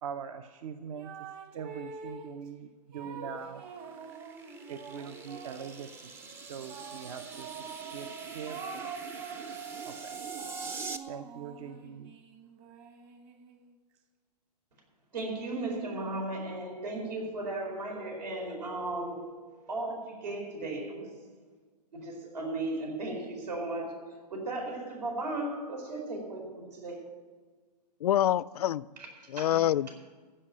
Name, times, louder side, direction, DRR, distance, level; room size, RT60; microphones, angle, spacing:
voice 1, 0.0-1.2 1.5-3.6 4.7-6.1 6.5-7.6 7.9-8.9 9.8-10.2 11.1-12.1, right 7 dB, 50° right, 10 dB, 0.7 m, -42 dB
sound 1, 0.9-2.4 2.9-5.8 6.7-9.6 10.1-13.7, right 5 dB, 30° right, 1.1 m, -46 dB
sound 2, 3.0-11.0, right 5 dB, 10° right, 0.4 m, -43 dB
voice 2, 15.1-21.2 21.9-27.1 29.0-29.6, right 2 dB, 80° right, 1 dB, 4.5 m, -36 dB
voice 3, 28.0-28.9 29.3-29.9, left 11 dB, 65° left, 20 dB, 0.4 m, -26 dB
15.0 x 5.5 x 8.8 m, 1.4 s
hypercardioid pair, 135°, 21 cm